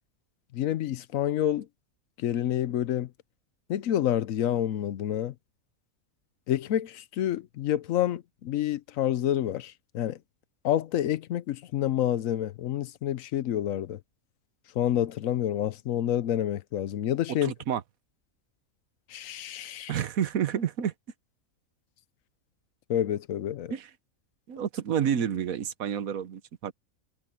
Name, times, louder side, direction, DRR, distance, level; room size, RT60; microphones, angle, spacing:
voice 1, 0.5-1.7 2.2-3.1 3.7-5.3 6.5-10.2 10.6-14.0 14.8-17.5 19.1-19.9 22.9-23.7, left 11 dB, 75° left, 1.1 m, -28 dB
voice 2, 17.3-17.8 19.9-20.9 23.7-23.9 24.5-26.7, right 8 dB, 80° right, 1.4 m, -29 dB
omnidirectional pair, 1.4 m